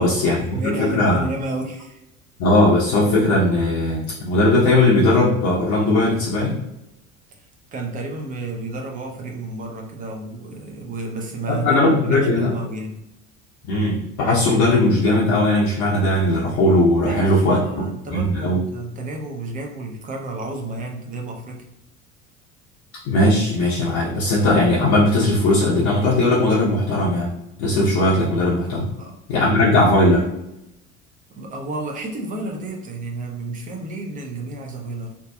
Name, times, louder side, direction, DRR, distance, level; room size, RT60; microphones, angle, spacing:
voice 1, 0.0-1.3 2.4-6.6 11.5-12.5 13.7-18.6 23.1-27.3 27.6-28.8 29.3-30.3, left 1 dB, 50° left, -5 dB, 0.7 m, -18 dB
voice 2, 0.5-2.0 7.7-13.0 17.0-21.6 29.0-29.2 29.4-29.7 31.3-35.1, right 2 dB, 20° right, 1 dB, 0.5 m, -31 dB
2.6 x 2.3 x 2.2 m, 0.87 s
figure-of-eight pair, 65°, 42 cm